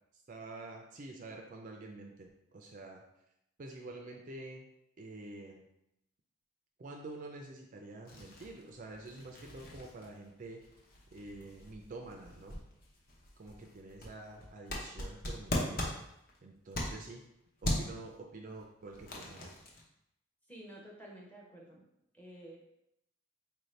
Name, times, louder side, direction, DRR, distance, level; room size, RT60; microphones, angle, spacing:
voice 1, 0.3-3.0 3.6-4.6 5.0-5.7 6.8-10.6 11.1-12.6 13.4-15.9 16.4-17.2 17.6-19.5, right 2 dB, 35° right, 1 dB, 0.4 m, -48 dB
sound 1, 8.1-17.3 17.6-18.1 18.6-19.8, left 1 dB, 45° left, 0.7 m, -40 dB
voice 2, 20.5-21.9 22.1-22.6, right 1 dB, 10° left, -2 dB, 0.6 m, -51 dB
4.3 x 2.7 x 3.2 m, 0.82 s
head